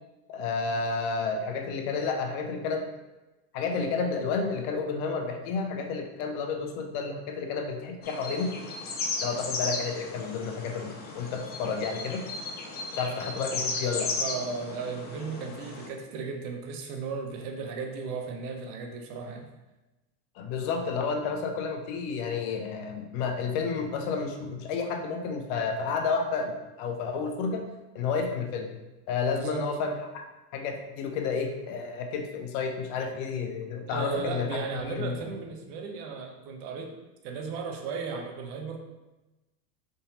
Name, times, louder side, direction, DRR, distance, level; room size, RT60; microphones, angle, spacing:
voice 1, 0.3-2.8 3.5-8.5 9.2-12.2 12.9-14.1 20.4-27.6 27.9-28.7 29.1-30.2 30.5-35.2, left 5 dB, 60° left, 4 dB, 0.8 m, -31 dB
sound 1, 8.0-15.9, left 3 dB, 20° left, 0.4 m, -35 dB
voice 2, 14.2-19.5 29.3-29.7 33.9-36.9 37.2-38.8, right 5 dB, 55° right, 3 dB, 0.8 m, -35 dB
4.2 x 3.7 x 2.8 m, 1.0 s
supercardioid pair, 120°, 47 cm